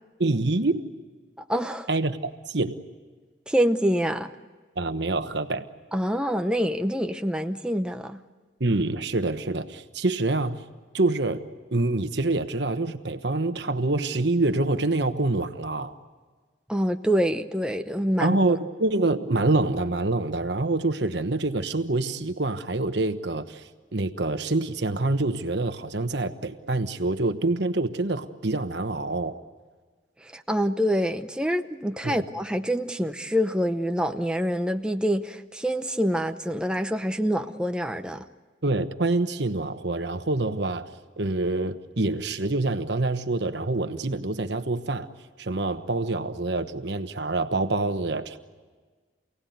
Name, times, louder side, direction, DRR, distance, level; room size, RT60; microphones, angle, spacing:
voice 1, 0.2-0.9 1.9-2.8 4.8-5.7 8.6-10.6 10.9-11.4 11.7-15.9 18.2-23.6 23.9-29.4 32.0-32.2 38.6-40.9 41.2-45.1 45.4-48.4, right 2 dB, 60° right, 9 dB, 1.2 m, -26 dB
voice 2, 1.5-1.9 3.5-4.3 5.9-8.2 16.7-18.4 30.2-38.2, equal, 5° right, 7 dB, 0.7 m, -26 dB
28.0 x 18.0 x 9.4 m, 1.5 s
head